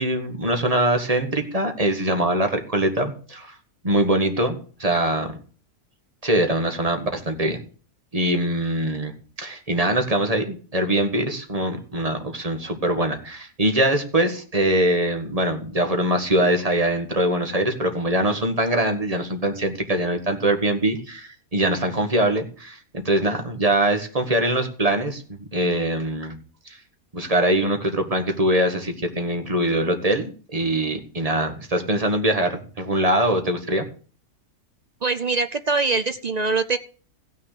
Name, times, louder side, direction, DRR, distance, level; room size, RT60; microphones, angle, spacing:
voice 1, 0.0-3.5 3.8-5.3 6.2-7.6 8.1-9.1 9.4-25.2 25.5-26.4 26.7-26.8 27.1-33.8, right 1 dB, 25° right, 6 dB, 1.8 m, -23 dB
voice 2, 35.0-36.8, right 4 dB, 60° right, 11 dB, 0.4 m, -23 dB
15.5 x 6.5 x 6.7 m, 0.41 s
omnidirectional pair, 1.6 m